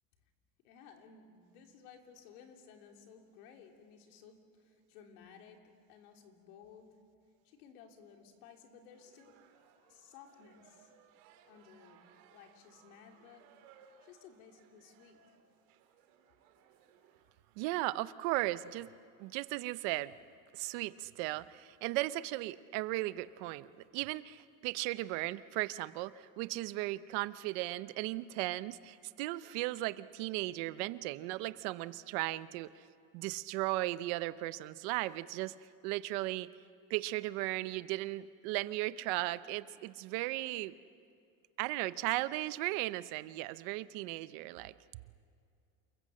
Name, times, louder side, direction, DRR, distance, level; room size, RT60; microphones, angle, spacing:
voice 1, 0.6-5.6 5.9-7.0 7.4-9.4 9.9-10.9 11.5-12.0 12.3-13.5 14.0-15.4, left 7 dB, 75° left, 3 dB, 3.3 m, -57 dB
sound 1, 8.9-17.2, right 7 dB, 75° right, 2.9 m, -64 dB
voice 2, 17.6-18.9 19.2-20.1 20.5-23.7 23.9-32.8 33.1-35.5 35.8-36.5 36.9-40.7 41.6-44.7, right 18 dB, 60° right, 15 dB, 0.8 m, -36 dB
28.5 x 22.0 x 7.6 m, 2.4 s
cardioid pair, 165°, 44 cm